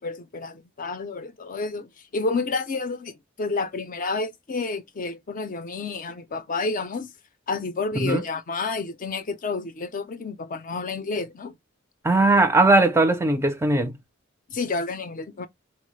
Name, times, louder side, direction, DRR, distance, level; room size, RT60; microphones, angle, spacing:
voice 1, 0.0-7.1 7.5-11.5 14.5-15.5, left 3 dB, 45° left, 0.5 m, -30 dB
voice 2, 12.0-14.0, right 2 dB, 15° right, 0.4 m, -19 dB
4.1 x 2.0 x 3.0 m
head